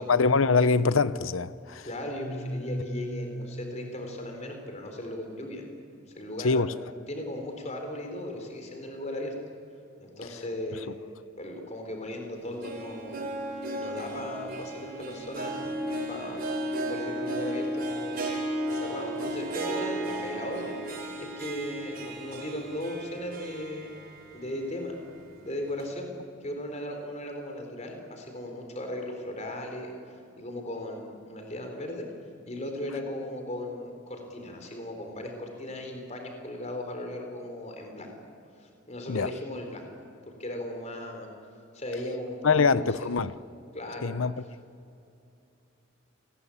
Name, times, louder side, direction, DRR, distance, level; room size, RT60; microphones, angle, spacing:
voice 1, 0.0-1.9 6.4-6.7 39.1-39.3 42.4-43.3 44.0-44.4, left 4 dB, 85° left, 0.8 m, -24 dB
voice 2, 1.8-5.6 6.2-6.7 7.1-9.3 10.0-10.9 11.4-13.2 13.8-15.6 16.1-16.4 16.8-18.2 18.4-20.8 21.2-23.9 24.3-25.0 25.4-32.1 32.5-38.1 38.6-39.9 40.4-41.3 41.7-43.1 43.7-44.1, left 1 dB, 35° left, 4.2 m, -37 dB
sound 1, 2.1-4.9, equal, 65° left, 7.9 m, -37 dB
Harp, 12.4-24.5 24.8-24.9 25.8-25.9, right 1 dB, 50° right, 3.8 m, -34 dB
29.5 x 21.0 x 8.7 m
head